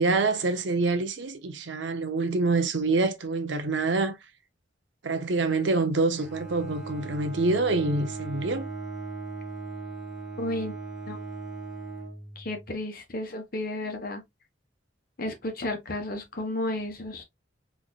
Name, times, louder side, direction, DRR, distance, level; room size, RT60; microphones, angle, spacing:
voice 1, 0.0-4.2 5.0-8.7, right 3 dB, 80° right, 0.7 m, -26 dB
Bowed string instrument, 6.1-12.8, right 3 dB, ahead, 1.3 m, -38 dB
voice 2, 10.4-10.8 11.1-11.2 12.4-14.2 15.2-17.2, left 1 dB, 50° left, 1.1 m, -32 dB
4.1 x 3.3 x 2.3 m
head